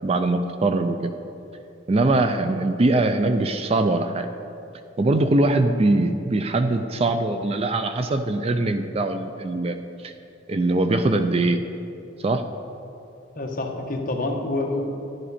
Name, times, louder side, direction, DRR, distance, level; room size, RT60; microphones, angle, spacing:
voice 1, 0.0-1.1 1.9-4.3 5.0-9.8 10.0-10.1 10.5-11.6 12.2-12.4, right 2 dB, 30° right, 8 dB, 0.4 m, -22 dB
voice 2, 13.3-15.0, left 2 dB, 45° left, 1 dB, 1.2 m, -27 dB
11.0 x 10.5 x 4.3 m, 2.8 s
head